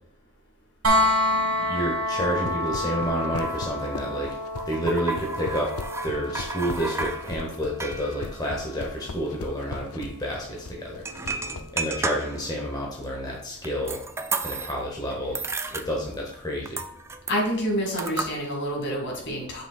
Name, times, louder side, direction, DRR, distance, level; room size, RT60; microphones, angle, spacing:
sound 1, 0.8-12.7 14.6-14.7, left 1 dB, 70° right, 1.6 m, -30 dB
voice 1, 1.3-4.4 4.7-5.7 6.0-11.1 11.7-14.0 14.4-15.4 15.7-16.9, equal, 20° left, -2 dB, 1.0 m, -30 dB
sound 2, 2.1-11.7, left 4 dB, 80° left, 0.5 m, -38 dB
sound 3, 3.4-9.4 9.7-9.8 10.0-10.2 10.9-12.6 13.1-14.9 15.2-16.4 16.7-18.3, right 3 dB, 10° right, 0.4 m, -33 dB
voice 2, 17.3-19.6, equal, 55° left, -1 dB, 2.1 m, -28 dB
7.9 x 6.0 x 2.4 m, 0.73 s
head